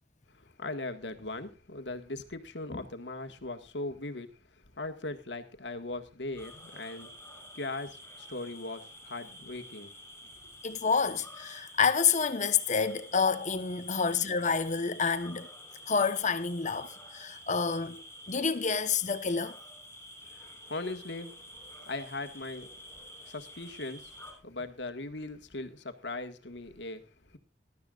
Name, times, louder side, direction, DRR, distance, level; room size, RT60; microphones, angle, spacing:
voice 1, 0.3-4.3 4.8-7.1 7.5-9.9 20.3-21.4 21.9-22.7 23.3-24.1 24.4-27.0 27.3-27.4, left 2 dB, 80° left, 1.8 m, -39 dB
sound 1, 6.4-24.3, equal, 10° left, 5.7 m, -49 dB
voice 2, 10.6-15.5 15.9-18.0 18.3-19.6, left 5 dB, 45° left, 1.1 m, -28 dB
19.5 x 12.5 x 2.5 m
head